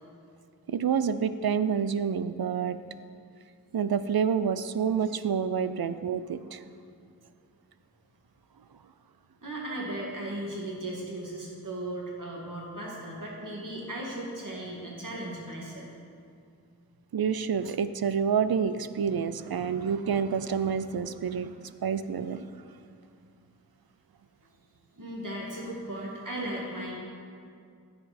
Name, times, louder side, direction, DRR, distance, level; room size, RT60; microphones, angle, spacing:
voice 1, 0.7-2.8 3.7-6.6 17.1-21.5 21.8-22.4, right 7 dB, 75° right, 12 dB, 0.5 m, -28 dB
voice 2, 9.4-15.9 25.0-26.9, right 1 dB, 60° right, -4 dB, 2.2 m, -36 dB
15.5 x 6.9 x 4.2 m, 2.3 s
wide cardioid pair, 60°, 36 cm